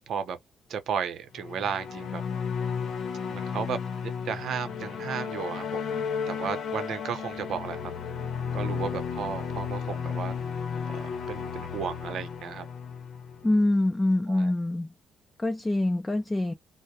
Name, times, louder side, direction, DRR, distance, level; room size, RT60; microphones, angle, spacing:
voice 1, 0.1-0.4 0.7-2.2 3.3-5.8 6.3-7.9 8.5-10.3 10.9-12.7 14.3-14.5, right 7 dB, 70° right, 0.7 m, -34 dB
sound 1, 1.3-13.8, left 6 dB, 70° left, 0.7 m, -33 dB
voice 2, 13.4-14.9 15.4-16.5, left 1 dB, 15° left, 0.4 m, -25 dB
2.2 x 2.1 x 2.7 m
cardioid pair, 90°, 0 cm